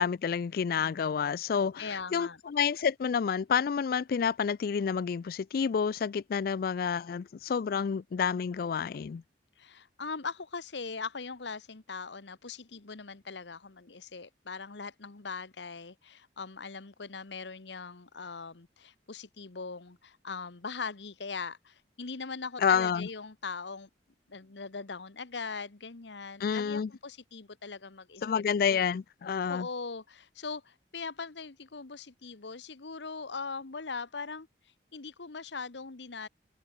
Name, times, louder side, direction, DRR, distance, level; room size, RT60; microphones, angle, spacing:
voice 1, 0.0-1.8 2.1-9.2 22.6-23.1 26.4-26.9 28.2-29.7, left 6 dB, 55° left, 0.3 m, -29 dB
voice 2, 1.8-2.4 9.6-23.9 24.3-28.8 29.5-34.5 34.9-36.3, left 4 dB, 75° left, 1.1 m, -40 dB
head